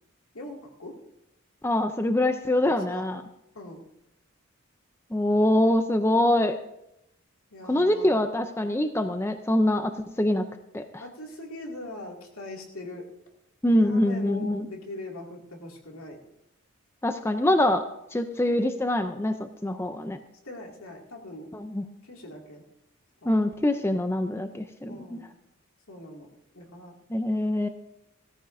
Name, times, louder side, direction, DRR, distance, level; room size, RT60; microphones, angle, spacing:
voice 1, 0.3-1.0 2.6-3.0 3.5-3.8 7.5-8.2 11.0-13.1 13.8-16.2 20.4-21.5 22.0-22.6 23.2-23.3 24.9-25.3 25.9-26.3 26.5-26.9, left 2 dB, 85° left, 0 dB, 2.3 m, -41 dB
voice 2, 1.6-3.2 5.1-6.6 7.7-9.9 10.2-10.5 10.7-11.0 13.6-14.7 17.0-17.8 18.1-20.2 21.5-21.9 23.3-25.3 27.1-27.7, left 1 dB, 10° left, 8 dB, 0.4 m, -24 dB
17.5 x 14.0 x 2.6 m, 0.83 s
head